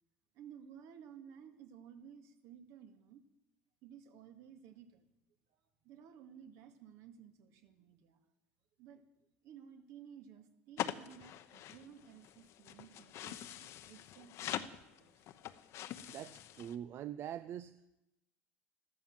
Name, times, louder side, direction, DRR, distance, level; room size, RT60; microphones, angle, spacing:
voice 1, 0.3-3.2 3.8-5.1 5.5-8.2 8.8-9.0 9.4-15.3, right 8 dB, 65° right, 6 dB, 2.1 m, -56 dB
sound 1, 10.8-16.8, left 12 dB, 60° left, 0.9 m, -44 dB
voice 2, 16.1-18.0, right 10 dB, 50° right, 14 dB, 0.6 m, -44 dB
13.5 x 13.0 x 7.4 m, 0.88 s
supercardioid pair, 110°, 6 cm